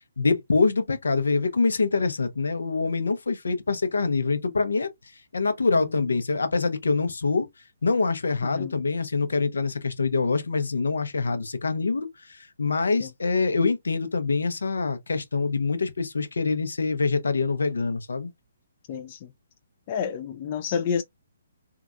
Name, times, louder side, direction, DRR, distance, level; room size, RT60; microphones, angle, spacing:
voice 1, 0.2-4.9 5.3-7.5 7.8-18.3, left 4 dB, 80° left, 0.7 m, -25 dB
voice 2, 8.4-8.7 13.0-13.1 18.9-19.3 19.9-21.0, left 7 dB, 40° left, 0.3 m, -29 dB
3.8 x 2.3 x 2.4 m
figure-of-eight pair, 140°, 0 cm